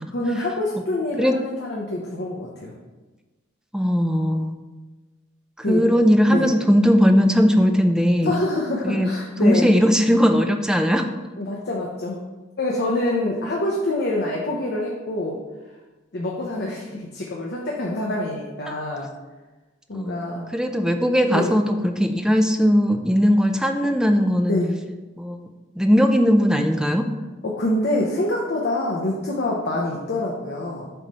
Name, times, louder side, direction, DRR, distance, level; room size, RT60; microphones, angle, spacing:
voice 1, 0.1-2.8 5.6-5.8 6.3-6.5 8.2-9.7 11.4-12.2 12.6-15.4 16.1-19.1 19.9-20.5 21.3-21.6 24.4-24.8 27.4-30.9, left 1 dB, 55° left, -2 dB, 0.9 m, -26 dB
voice 2, 3.7-4.6 5.6-8.4 8.8-9.1 9.4-11.0 19.9-20.2 20.5-24.6 25.2-25.4 25.8-27.1, equal, 5° right, 5 dB, 0.5 m, -18 dB
7.9 x 3.2 x 5.5 m, 1.2 s
head